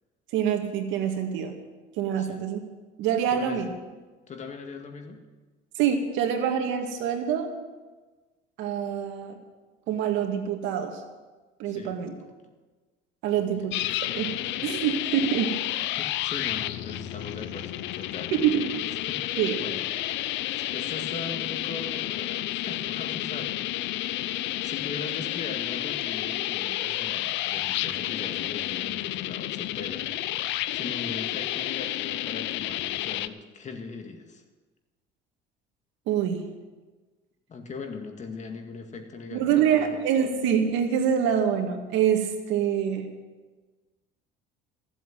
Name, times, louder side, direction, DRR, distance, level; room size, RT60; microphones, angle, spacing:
voice 1, 0.3-1.6 2.0-2.6 3.0-3.7 5.8-7.5 8.6-9.4 9.9-11.0 11.6-12.1 13.2-13.8 14.1-15.6 18.3-18.7 19.4-19.5 36.1-36.5 39.3-43.1, right 8 dB, 75° right, 5 dB, 2.0 m, -25 dB
voice 2, 3.3-3.7 4.3-5.2 11.7-12.3 13.4-13.7 15.8-18.7 19.1-23.6 24.6-30.1 30.7-34.4 37.5-39.9, left 4 dB, 40° left, 5 dB, 2.0 m, -40 dB
sound 1, 13.7-33.3, left 14 dB, 70° left, 0.6 m, -31 dB
15.0 x 7.8 x 9.1 m, 1.3 s
cardioid pair, 110°, 20 cm